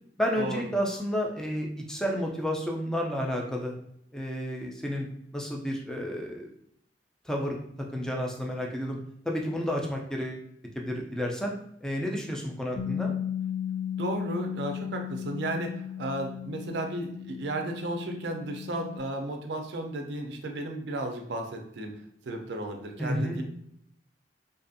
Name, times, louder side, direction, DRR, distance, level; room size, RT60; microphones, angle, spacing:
voice 1, 0.2-3.7 4.1-5.1 5.3-6.5 7.3-7.6 7.9-9.0 9.3-10.4 10.8-11.5 11.8-13.1 23.0-23.4, equal, 5° left, 0 dB, 0.4 m, -31 dB
Bass guitar, 12.8-19.0, left 9 dB, 85° left, 0.7 m, -35 dB
voice 2, 14.0-21.9 22.3-23.4, right 2 dB, 65° right, 4 dB, 0.4 m, -34 dB
2.6 x 2.4 x 2.5 m, 0.72 s
head